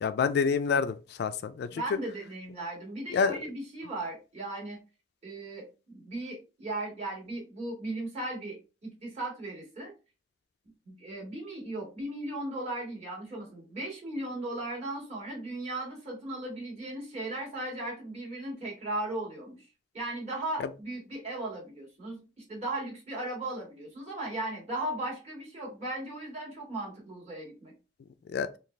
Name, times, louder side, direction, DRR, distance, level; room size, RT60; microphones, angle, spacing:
voice 1, 0.0-1.8 3.1-3.4 28.3-28.5, left 5 dB, 65° left, 0.3 m, -27 dB
voice 2, 1.7-4.8 5.2-9.9 10.9-19.7 19.9-22.2 22.5-27.7, right 2 dB, 40° right, 1.9 m, -37 dB
4.0 x 2.4 x 3.2 m
head